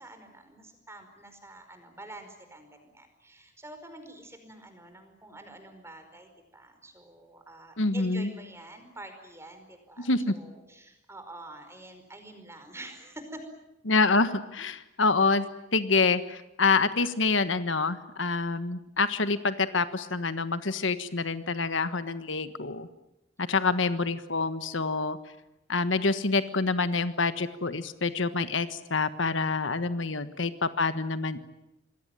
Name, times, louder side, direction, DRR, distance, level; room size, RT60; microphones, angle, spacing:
voice 1, 0.0-13.4, right 1 dB, 15° right, 7 dB, 4.9 m, -47 dB
voice 2, 7.8-8.3 10.0-10.3 13.9-15.4 15.7-22.9 23.4-25.2 25.7-31.4, left 4 dB, 70° left, 12 dB, 1.4 m, -27 dB
27.0 x 21.0 x 9.1 m, 0.92 s
head